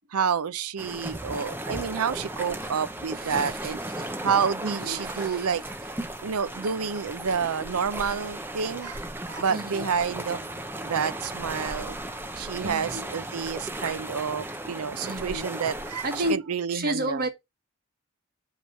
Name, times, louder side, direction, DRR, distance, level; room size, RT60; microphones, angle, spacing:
voice 1, 0.1-3.8 4.2-5.6 6.2-9.0 9.3-10.5 10.8-12.0 12.3-17.2, right 6 dB, 85° right, 0.5 m, -29 dB
sound 1, 0.8-16.3, right 1 dB, 10° right, 0.6 m, -36 dB
voice 2, 3.1-4.2 4.6-5.9 9.5-9.9 12.6-13.1 15.0-15.5 16.0-17.3, right 1 dB, 40° right, 1.2 m, -33 dB
8.1 x 3.1 x 5.6 m
head